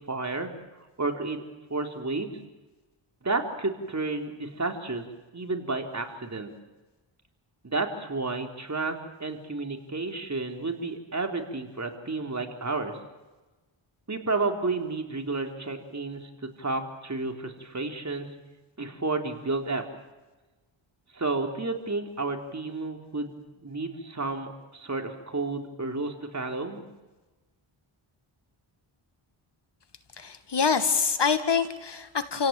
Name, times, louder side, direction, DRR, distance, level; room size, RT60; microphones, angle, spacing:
voice 1, 0.1-0.5 1.0-1.4 1.7-2.4 3.2-5.0 5.3-6.5 7.6-13.0 14.1-16.3 16.6-18.3 18.8-19.8 21.1-23.3 23.6-26.8, right 3 dB, 35° right, 3 dB, 3.9 m, -31 dB
voice 2, 30.2-32.5, left 5 dB, 55° left, 10 dB, 2.1 m, -25 dB
29.5 x 17.5 x 9.1 m, 1.2 s
cardioid pair, 65°, 50 cm